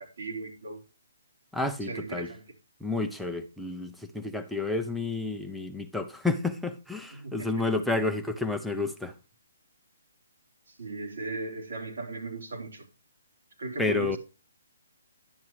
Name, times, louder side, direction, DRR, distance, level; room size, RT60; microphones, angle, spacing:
voice 1, 0.2-0.8 1.8-2.4 7.1-7.7 10.7-12.9 13.6-14.2, right 2 dB, 75° right, 3.7 m, -37 dB
voice 2, 1.5-2.3 2.8-9.1 13.8-14.2, left 3 dB, ahead, 0.7 m, -30 dB
10.5 x 7.3 x 3.0 m
hypercardioid pair, 160°, 0 cm